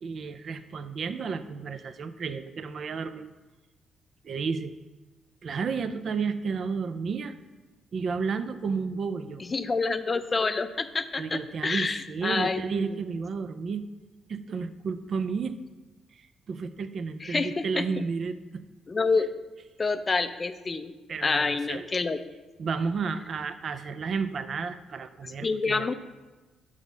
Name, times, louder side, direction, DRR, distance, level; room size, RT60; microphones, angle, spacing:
voice 1, 0.0-3.3 4.2-4.7 5.4-7.3 7.9-9.4 11.2-13.8 14.3-15.6 16.1-18.6 21.1-21.9 22.6-25.9, right 5 dB, 55° right, 11 dB, 0.5 m, -32 dB
voice 2, 9.5-12.6 17.2-17.8 18.9-19.3 19.8-20.9 21.2-22.2 25.4-25.9, left 4 dB, 30° left, 11 dB, 0.4 m, -27 dB
5.4 x 4.9 x 6.3 m, 1.2 s
cardioid pair, 90°, 0 cm